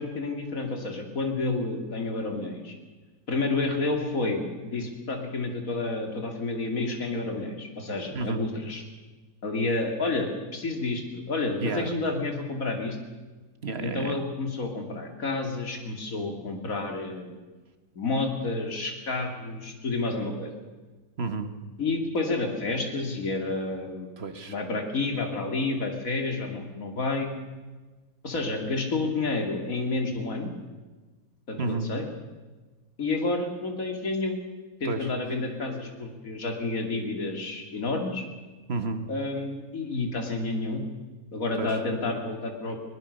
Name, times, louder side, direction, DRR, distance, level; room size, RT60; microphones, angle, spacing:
voice 1, 0.0-2.7 3.3-8.8 9.4-13.0 13.8-17.4 17.9-20.6 21.8-24.1 24.5-27.3 28.2-30.5 31.5-32.1 33.0-34.4 34.8-38.2 39.1-40.8 41.3-42.8, left 3 dB, 60° left, 4 dB, 3.1 m, -30 dB
voice 2, 8.1-8.4 11.6-11.9 13.6-14.2 21.2-21.5 24.2-24.5 31.6-31.9 34.9-35.1 38.7-39.1 41.6-41.8, right 3 dB, 45° right, 8 dB, 1.7 m, -31 dB
21.5 x 19.0 x 6.7 m, 1.2 s
omnidirectional pair, 1.6 m